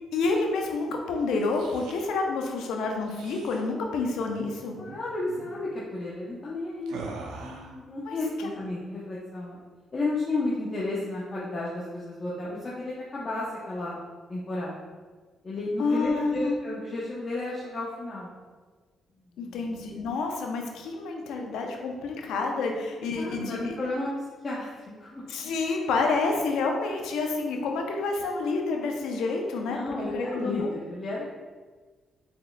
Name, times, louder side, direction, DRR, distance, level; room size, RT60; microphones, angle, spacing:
voice 1, 0.1-4.7 8.1-8.5 15.8-16.6 19.4-23.8 25.3-30.7, left 3 dB, 85° left, 2 dB, 0.6 m, -29 dB
sound 1, 1.3-2.1 3.0-3.6 4.3-4.5 4.8-5.0 5.3-5.5 6.9-7.8, right 3 dB, 85° right, 0.5 m, -42 dB
voice 2, 4.8-7.0 7.4-9.6 9.9-14.0 14.3-14.8 15.4-18.3 19.3-19.6 23.2-24.7 25.0-25.2 29.7-31.2, left 2 dB, 35° left, -6 dB, 0.7 m, -32 dB
4.3 x 3.7 x 2.2 m, 1.4 s
cardioid pair, 90°, 0 cm